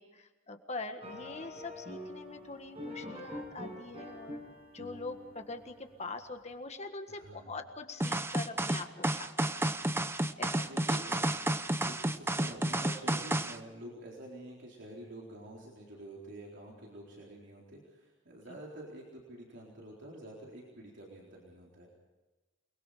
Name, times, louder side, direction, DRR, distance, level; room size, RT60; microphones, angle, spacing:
voice 1, 0.0-4.4 4.7-10.6, left 3 dB, 35° left, 6 dB, 1.6 m, -44 dB
sound 1, 1.0-6.3, left 1 dB, 30° right, 6.4 m, -45 dB
voice 2, 7.1-7.6 10.2-11.3 11.7-21.9, right 1 dB, 60° right, -3 dB, 4.0 m, -48 dB
sound 2, 8.0-13.6, right 1 dB, 10° right, 0.8 m, -31 dB
29.0 x 21.5 x 5.1 m, 1.2 s
head